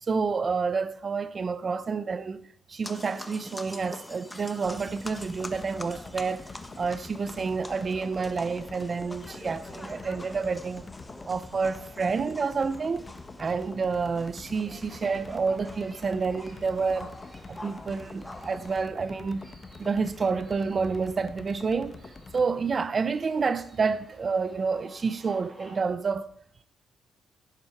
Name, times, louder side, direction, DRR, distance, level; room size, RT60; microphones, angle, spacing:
voice 1, 0.0-6.5 6.8-10.9 11.2-13.1 13.4-17.1 17.5-19.4 19.8-21.9 22.3-26.3, right 5 dB, 40° right, 0.8 m, -29 dB
sound 1, 2.8-18.8, left 1 dB, 10° left, 1.4 m, -45 dB
sound 2, 4.6-22.5, left 3 dB, 30° left, 1.3 m, -46 dB
sound 3, 14.7-25.8, right 1 dB, 20° right, 6.4 m, -55 dB
16.5 x 11.0 x 4.6 m
cardioid pair, 90°, 0 cm